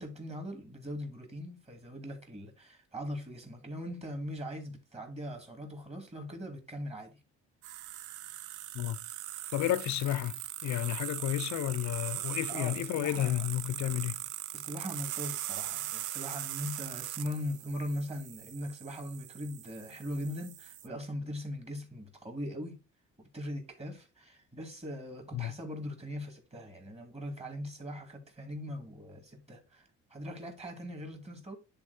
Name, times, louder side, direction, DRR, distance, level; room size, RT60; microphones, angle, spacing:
voice 1, 0.0-7.1 12.5-13.5 14.5-22.8 23.2-29.8 30.1-31.6, equal, 20° right, 2.3 m, -40 dB
sound 1, 7.6-20.9, right 13 dB, 75° right, 0.5 m, -40 dB
voice 2, 9.5-14.1 25.3-25.5, left 13 dB, 65° left, 0.6 m, -32 dB
11.0 x 3.8 x 2.7 m
cardioid pair, 90°, 30 cm